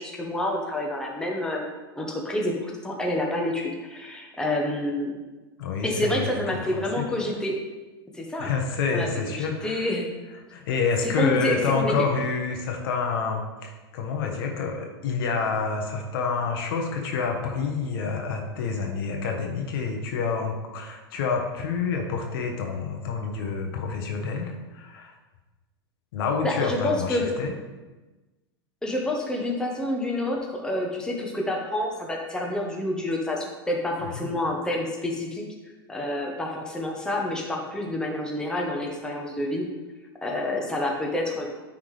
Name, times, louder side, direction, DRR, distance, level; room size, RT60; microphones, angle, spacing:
voice 1, 0.0-1.7 2.0-5.1 5.8-7.6 8.1-8.5 8.9-10.1 11.0-11.9 26.4-27.3 28.8-35.4 35.9-39.6 40.2-41.4, left 1 dB, 5° left, -1 dB, 1.1 m, -28 dB
voice 2, 5.6-7.0 8.4-9.9 10.5-25.1 26.1-27.6 34.0-34.3, left 5 dB, 60° left, 2 dB, 1.1 m, -28 dB
9.5 x 3.7 x 3.3 m, 1.2 s
hypercardioid pair, 95°, 13 cm